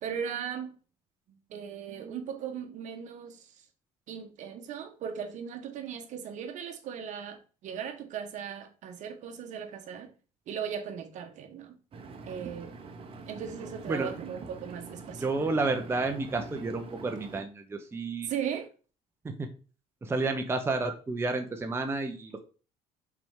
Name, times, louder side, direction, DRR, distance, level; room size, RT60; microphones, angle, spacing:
voice 1, 0.0-0.7 1.3-3.6 4.1-10.1 10.5-11.8 12.3-12.8 13.3-15.6 18.3-18.7, right 8 dB, 60° right, 1.1 m, -38 dB
Engine, 11.9-17.4, right 4 dB, 40° right, 1.1 m, -45 dB
voice 2, 15.1-18.3 19.2-19.5 20.0-22.4, right 3 dB, 15° right, 0.7 m, -31 dB
5.8 x 4.4 x 3.6 m
cardioid pair, 130°, 15 cm